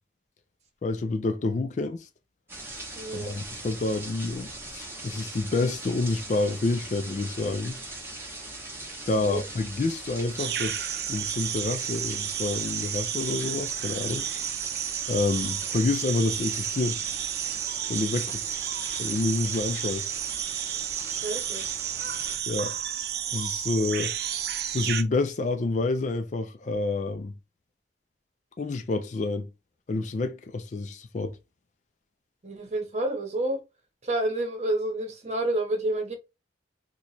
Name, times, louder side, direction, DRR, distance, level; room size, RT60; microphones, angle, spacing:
voice 1, 0.8-2.1 3.1-7.8 9.1-14.3 15.1-17.0 17.9-18.6 19.0-20.1 22.5-22.7 23.3-24.1 24.7-27.3 28.6-29.5 29.9-31.4, left 3 dB, 40° left, 0.3 m, -28 dB
sound 1, 2.5-22.4, right 2 dB, 15° right, 0.8 m, -40 dB
voice 2, 2.9-3.3 9.2-9.4 21.1-21.6 32.4-33.6 34.0-36.1, right 1 dB, 40° right, 0.9 m, -29 dB
sound 2, 10.4-25.0, right 10 dB, 60° right, 0.4 m, -32 dB
3.0 x 2.2 x 4.0 m
head